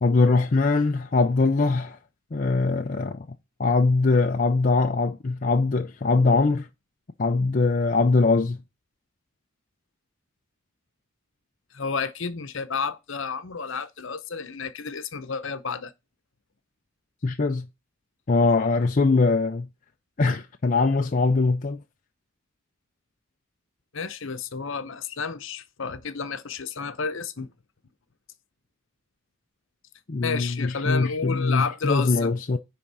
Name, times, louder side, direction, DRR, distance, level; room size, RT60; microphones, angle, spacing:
voice 1, 0.0-2.0 2.3-3.3 3.6-6.7 7.2-8.6 17.2-17.6 18.3-19.7 20.2-21.8 30.1-32.6, left 3 dB, 35° left, 0.5 m, -22 dB
voice 2, 11.7-15.9 23.9-27.5 30.2-32.3, left 5 dB, 60° left, 0.9 m, -31 dB
10.0 x 3.7 x 5.5 m
head